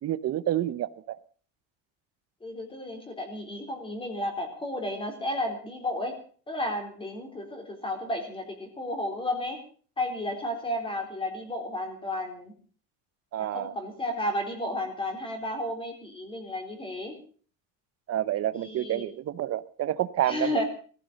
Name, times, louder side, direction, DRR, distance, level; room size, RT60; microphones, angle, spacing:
voice 1, 0.0-1.2 13.3-13.7 18.1-20.6, right 12 dB, 40° right, 16 dB, 0.9 m, -29 dB
voice 2, 2.4-6.2 6.5-9.6 10.0-12.5 13.4-17.1 18.5-19.1 20.3-20.6, left 1 dB, 15° left, 5 dB, 4.1 m, -32 dB
18.5 x 15.0 x 5.3 m, 0.43 s
cardioid pair, 155°, 37 cm